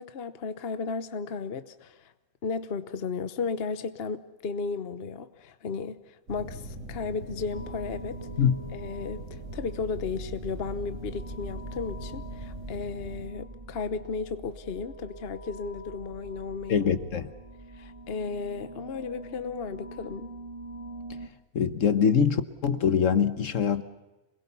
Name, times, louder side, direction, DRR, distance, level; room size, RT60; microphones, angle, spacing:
voice 1, 0.0-2.1 2.4-8.2 8.7-16.9 17.8-20.3, left 5 dB, 45° left, 1.1 m, -34 dB
sound 1, 6.3-13.3, right 1 dB, 55° right, 3.0 m, -42 dB
sound 2, 7.5-21.3, right 2 dB, 20° right, 1.6 m, -43 dB
voice 2, 16.7-17.3 21.5-23.8, left 7 dB, 60° left, 1.4 m, -23 dB
27.5 x 21.0 x 7.0 m
omnidirectional pair, 1.5 m